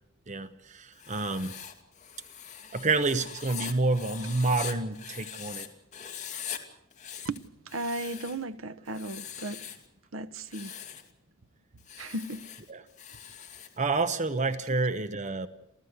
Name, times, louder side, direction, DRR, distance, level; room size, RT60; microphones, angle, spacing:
voice 1, 0.3-1.5 2.7-5.7 12.7-12.8 13.8-15.5, right 3 dB, 35° right, 1.0 m, -28 dB
Writing, 0.9-5.7 5.9-6.6 6.9-8.4 8.9-9.9 10.4-11.1 11.8-13.8, left 8 dB, 35° left, 2.5 m, -42 dB
voice 2, 7.2-9.6 10.1-10.7 12.0-12.5, right 2 dB, 70° right, 1.1 m, -36 dB
27.5 x 15.5 x 8.0 m
head